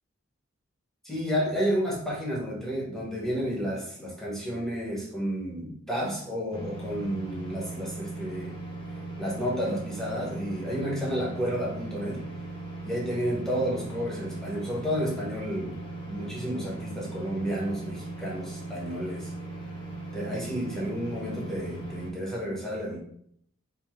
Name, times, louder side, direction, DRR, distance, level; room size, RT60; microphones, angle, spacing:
voice 1, 1.0-8.5 9.2-12.2 12.8-15.8 16.1-19.3 20.1-23.0, equal, ahead, -4 dB, 1.2 m, -31 dB
sound 1, 6.5-22.1, right 2 dB, 25° left, 0.8 m, -38 dB
4.4 x 2.9 x 3.3 m, 0.66 s
head